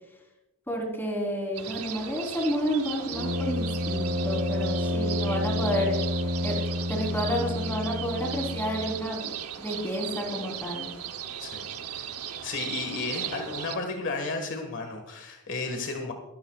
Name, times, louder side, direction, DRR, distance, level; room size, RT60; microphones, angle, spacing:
voice 1, 0.7-6.0 6.4-6.6 6.9-9.3 9.6-10.9, equal, 10° left, 0 dB, 3.6 m, -30 dB
sound 1, 1.5-13.8, right 9 dB, 80° right, 0.9 m, -37 dB
Brass instrument, 3.1-9.0, left 1 dB, 45° right, 4.2 m, -29 dB
voice 2, 11.4-12.1 12.4-16.1, left 3 dB, 60° left, 4 dB, 1.6 m, -33 dB
21.5 x 12.5 x 2.4 m, 0.96 s
head